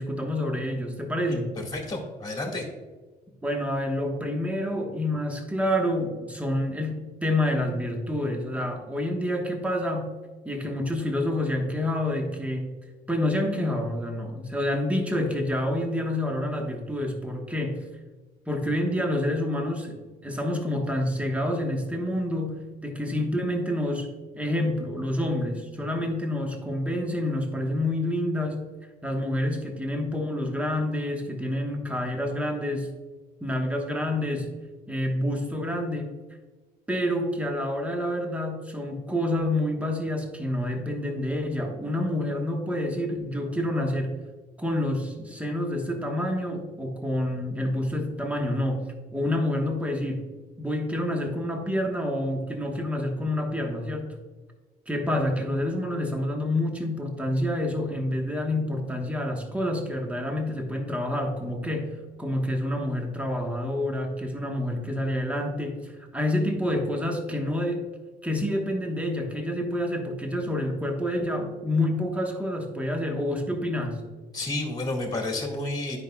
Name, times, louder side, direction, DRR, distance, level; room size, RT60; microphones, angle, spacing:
voice 1, 0.0-1.6 3.4-10.1 10.4-12.7 13.1-17.8 18.5-24.1 24.4-28.6 29.0-32.9 33.4-34.5 34.9-36.1 36.9-44.1 44.6-48.8 49.1-50.2 50.6-54.1 54.9-67.8 68.2-74.0, left 1 dB, 10° right, 2 dB, 1.2 m, -28 dB
voice 2, 1.3-2.7 74.3-76.0, left 2 dB, 25° left, 1 dB, 1.7 m, -31 dB
9.9 x 5.3 x 2.2 m, 1.3 s
cardioid pair, 110°, 17 cm